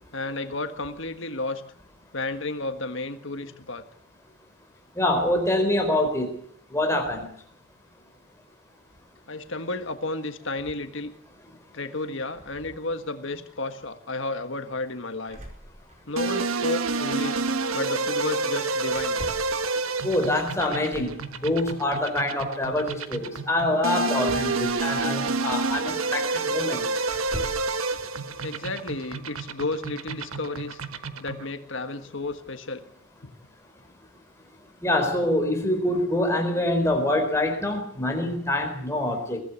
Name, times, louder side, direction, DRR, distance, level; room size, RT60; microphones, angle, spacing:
voice 1, 0.1-1.6 2.1-3.8 9.3-11.1 11.7-15.4 16.1-17.4 17.7-19.2 28.4-30.8 31.2-32.8, left 2 dB, 60° left, 8 dB, 1.6 m, -32 dB
voice 2, 4.9-6.3 6.7-7.3 20.0-21.1 21.4-26.8 34.8-39.4, left 1 dB, 15° left, 3 dB, 4.2 m, -25 dB
sound 1, 15.3-16.3 16.6-16.7 16.8-17.1 18.9-19.6 20.9-21.2 24.2-25.4 26.2-26.3 27.0-27.7, equal, 35° right, 5.0 m, -40 dB
sound 2, 16.2-31.5, right 3 dB, 85° right, 1.3 m, -29 dB
22.5 x 15.5 x 8.3 m, 0.64 s
head